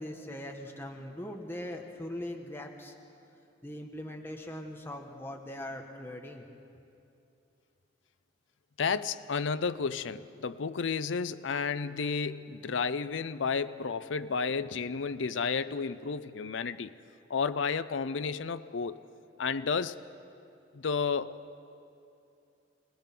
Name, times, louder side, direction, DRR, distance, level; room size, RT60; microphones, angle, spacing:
voice 1, 0.0-2.9 3.6-6.4, left 1 dB, 15° left, 2 dB, 1.3 m, -41 dB
voice 2, 8.8-16.9 17.3-19.0 19.4-20.0 20.7-21.4, left 5 dB, 85° left, 12 dB, 0.6 m, -32 dB
24.5 x 19.5 x 6.0 m, 2.6 s
head